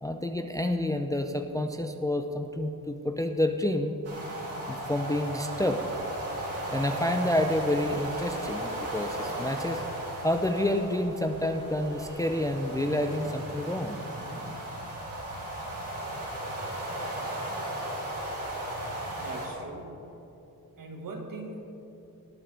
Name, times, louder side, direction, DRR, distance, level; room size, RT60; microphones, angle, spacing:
voice 1, 0.0-3.9 4.7-5.8 6.7-9.8 10.2-14.0, left 1 dB, 10° left, 5 dB, 0.5 m, -29 dB
sound 1, 4.0-19.5, right 1 dB, 40° right, 3.0 m, -36 dB
voice 2, 19.1-20.1 20.8-21.6, right 2 dB, 60° right, 2 dB, 1.8 m, -40 dB
19.0 x 8.8 x 3.4 m, 3.0 s
cardioid pair, 125°, 37 cm